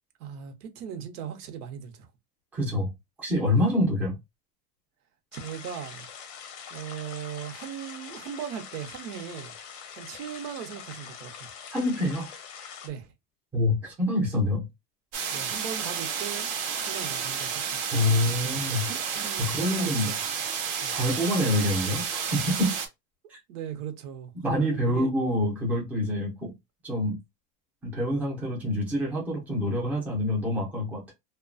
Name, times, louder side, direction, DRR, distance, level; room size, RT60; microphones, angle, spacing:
voice 1, 0.2-2.1 3.5-3.6 5.3-6.1 6.7-9.5 9.9-11.5 12.8-13.1 15.3-17.8 18.1-20.2 20.8-20.9 23.5-24.3 24.6-25.1, right 8 dB, 75° right, 0.8 m, -39 dB
voice 2, 2.5-2.9 3.2-4.2 11.7-12.3 13.5-14.7 17.9-18.9 19.4-20.1 20.9-22.7 23.3-23.4 24.4-26.5 26.8-27.2 27.8-31.1, left 1 dB, 5° right, 0.5 m, -26 dB
sound 1, 5.3-12.9, left 7 dB, 40° left, 0.6 m, -44 dB
sound 2, 15.1-22.9, right 7 dB, 45° right, 0.6 m, -31 dB
2.8 x 2.2 x 2.5 m
supercardioid pair, 160°, 46 cm